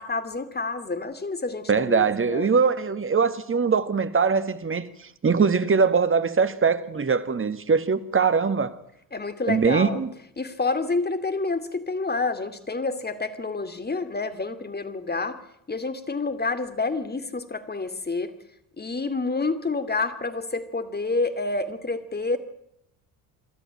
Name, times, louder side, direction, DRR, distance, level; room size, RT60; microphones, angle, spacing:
voice 1, 0.0-2.5 9.1-10.0 10.4-15.4 15.7-18.3 18.8-22.4, left 3 dB, 20° left, 2.6 m, -28 dB
voice 2, 1.7-4.8 5.2-8.7 9.5-10.1, right 5 dB, 25° right, 1.8 m, -22 dB
25.0 x 13.0 x 9.0 m
hypercardioid pair, 60°, 47 cm